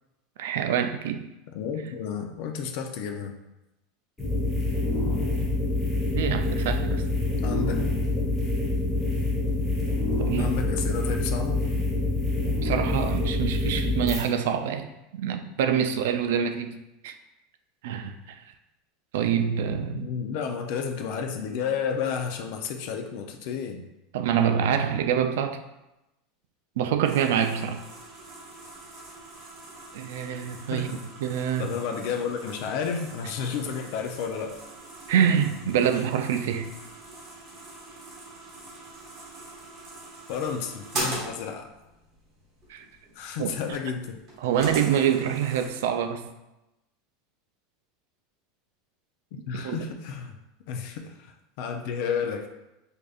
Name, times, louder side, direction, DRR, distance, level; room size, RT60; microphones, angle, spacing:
voice 1, 0.4-1.2 6.1-7.0 10.2-10.5 12.4-14.9 15.1-16.8 17.0-17.1 17.8-18.4 19.1-20.1 24.1-25.6 26.8-27.8 29.9-30.9 31.2-31.7 35.1-36.7 42.7-42.8 43.4-43.5 44.4-46.3 49.5-49.8, right 8 dB, 75° right, 7 dB, 0.3 m, -26 dB
voice 2, 1.5-3.3 7.4-7.8 8.2-8.3 10.4-11.6 19.9-23.8 30.7-30.9 31.6-34.5 40.3-41.7 43.2-44.2 49.5-50.4 50.7-52.5, left 6 dB, 55° left, 4 dB, 0.4 m, -31 dB
sound 1, 4.2-14.2, left 2 dB, 10° left, 0.8 m, -26 dB
sound 2, 27.0-45.7, right 2 dB, 30° right, 1.2 m, -41 dB
4.8 x 2.6 x 2.3 m, 0.94 s
supercardioid pair, 165°, 0 cm